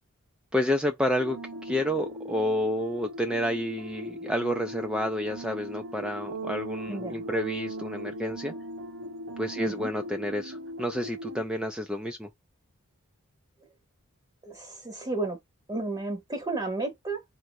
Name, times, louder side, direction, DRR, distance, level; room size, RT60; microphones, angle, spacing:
voice 1, 0.5-8.5 9.4-12.3, equal, 5° right, 0.4 m, -30 dB
sound 1, 1.2-11.4, right 1 dB, 80° right, 1.0 m, -39 dB
voice 2, 6.9-7.2 9.6-9.9 14.4-15.4 15.7-17.2, right 2 dB, 20° right, 0.9 m, -32 dB
4.3 x 2.6 x 4.5 m
head